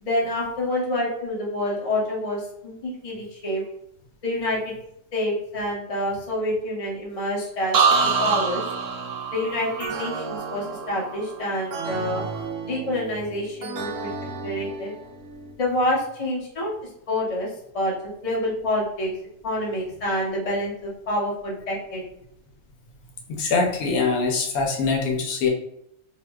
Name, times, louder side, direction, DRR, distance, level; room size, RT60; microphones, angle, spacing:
voice 1, 0.0-3.6 4.2-4.7 5.1-7.8 8.2-8.6 9.3-12.2 12.6-14.1 14.4-14.9 15.6-16.7 17.1-17.9 18.2-19.1 19.4-22.0, left 1 dB, 30° left, -4 dB, 0.8 m, -27 dB
sound 1, 7.7-11.5 11.9-12.4, right 5 dB, 65° right, 0.6 m, -25 dB
sound 2, 7.9-15.5, right 4 dB, 85° right, 1.0 m, -35 dB
voice 2, 23.3-25.5, left 4 dB, 80° left, 1 dB, 1.2 m, -23 dB
3.8 x 2.8 x 2.3 m, 0.75 s
omnidirectional pair, 1.5 m